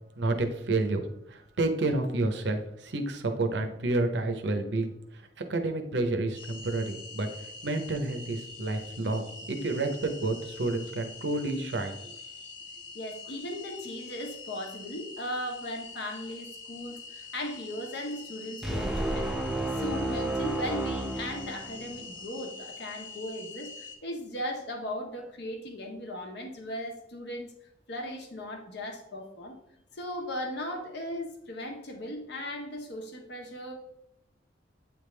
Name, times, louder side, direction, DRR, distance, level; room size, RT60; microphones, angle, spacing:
voice 1, 0.2-11.9, right 2 dB, 65° right, 6 dB, 0.7 m, -30 dB
sound 1, 6.3-24.0, left 4 dB, 85° left, 0.8 m, -45 dB
voice 2, 12.9-19.4 19.8-27.5 27.9-29.6 29.9-33.7, left 1 dB, 60° left, 3 dB, 1.0 m, -37 dB
sound 2, 18.6-22.1, right 1 dB, ahead, 0.5 m, -31 dB
8.5 x 3.5 x 3.2 m, 0.80 s
head